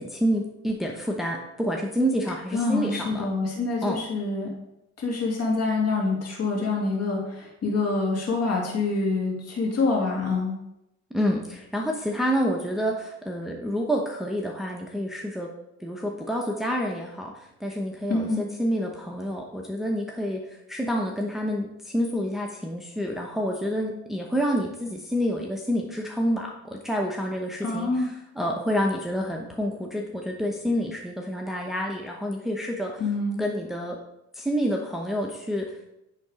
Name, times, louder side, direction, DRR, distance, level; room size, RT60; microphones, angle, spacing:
voice 1, 0.0-3.3 3.8-4.0 11.1-15.5 15.8-33.0 33.4-34.0 34.3-35.9, equal, ahead, 0 dB, 0.9 m, -28 dB
voice 2, 2.5-4.5 5.0-10.6 18.1-18.5 27.6-28.1 33.0-33.4, left 3 dB, 55° left, -2 dB, 2.4 m, -26 dB
9.5 x 3.8 x 5.0 m, 0.85 s
cardioid pair, 90°, 30 cm